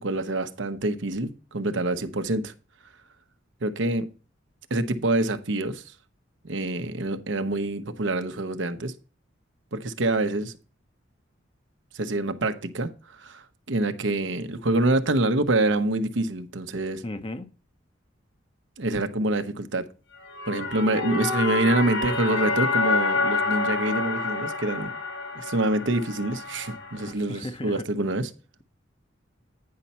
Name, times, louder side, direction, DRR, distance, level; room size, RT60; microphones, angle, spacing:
voice 1, 0.0-2.5 3.6-4.1 4.7-5.8 6.4-8.9 9.7-10.5 11.9-17.0 18.8-19.8 20.5-24.9 25.3-28.3, right 2 dB, 70° right, 0.9 m, -26 dB
voice 2, 17.0-17.5 27.1-27.9, left 1 dB, 30° left, 0.8 m, -35 dB
sound 1, 20.2-27.1, left 3 dB, 80° left, 1.3 m, -28 dB
9.7 x 5.6 x 4.2 m
head